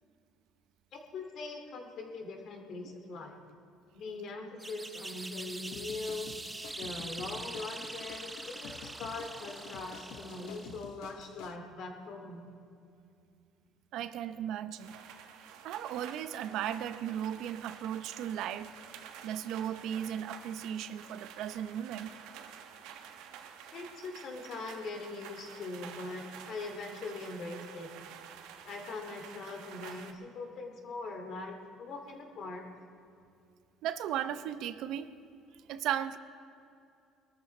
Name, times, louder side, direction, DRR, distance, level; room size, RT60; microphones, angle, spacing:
voice 1, 0.9-3.4 3.9-6.4 6.7-12.5 23.7-27.9 28.6-32.6, left 3 dB, 55° left, 4 dB, 2.3 m, -41 dB
sound 1, 4.6-11.0, right 2 dB, 10° right, 0.7 m, -43 dB
sound 2, 5.7-11.6, left 8 dB, 75° left, 0.8 m, -50 dB
voice 2, 13.9-15.0 15.6-18.7 19.2-22.1 33.8-35.1 35.7-36.2, right 10 dB, 70° right, 12 dB, 0.7 m, -36 dB
sound 3, 14.8-30.1, right 8 dB, 85° right, 1.2 m, -50 dB
22.0 x 13.5 x 4.3 m, 2.5 s
cardioid pair, 130°, 0 cm